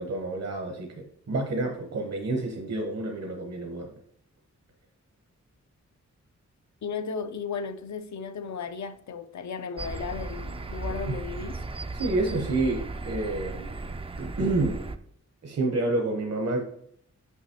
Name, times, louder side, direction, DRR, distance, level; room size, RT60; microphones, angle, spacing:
voice 1, 0.0-3.9 11.1-11.2 11.9-14.9 15.4-16.6, right 2 dB, 60° right, 0.9 m, -29 dB
voice 2, 6.8-11.6, left 5 dB, 70° left, 0.5 m, -35 dB
sound 1, 9.8-15.0, right 3 dB, 20° right, 0.3 m, -36 dB
5.9 x 5.7 x 2.8 m
wide cardioid pair, 115°, 29 cm